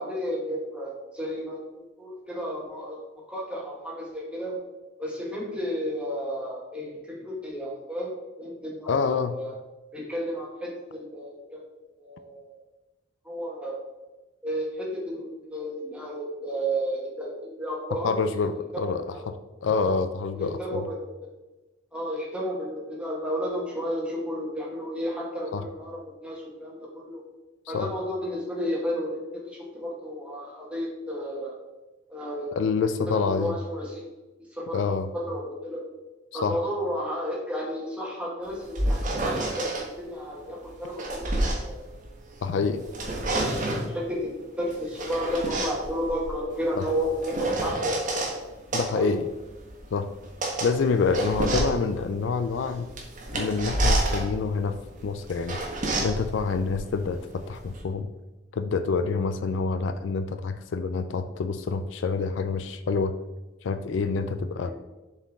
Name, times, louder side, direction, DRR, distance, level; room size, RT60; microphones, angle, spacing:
voice 1, 0.0-4.6 5.0-9.0 9.4-9.5 9.9-11.6 12.0-12.6 13.2-13.8 14.4-18.4 18.7-19.3 20.3-21.0 21.9-27.2 27.7-31.6 32.1-32.5 33.1-34.1 34.5-35.8 36.3-39.7 40.0-41.2 41.6-41.9 42.7-43.4 43.7-48.4 48.9-49.1 64.6-64.7, equal, 5° right, -4 dB, 1.5 m, -32 dB
voice 2, 8.9-9.4 18.0-19.3 19.6-20.9 25.5-25.6 27.7-27.9 32.5-33.5 34.7-35.1 36.3-36.6 42.4-42.8 46.8-46.9 48.7-49.3 49.9-50.1 50.6-52.9 53.3-54.8 55.0-55.6 56.0-58.1 58.5-63.2 63.6-64.7, left 4 dB, 65° left, 10 dB, 0.4 m, -27 dB
sound 1, 38.5-39.9 40.7-42.5 42.8-43.9 44.7-48.4 48.7-57.8, right 1 dB, 40° right, 1.2 m, -29 dB
6.9 x 4.4 x 3.5 m, 1.1 s
head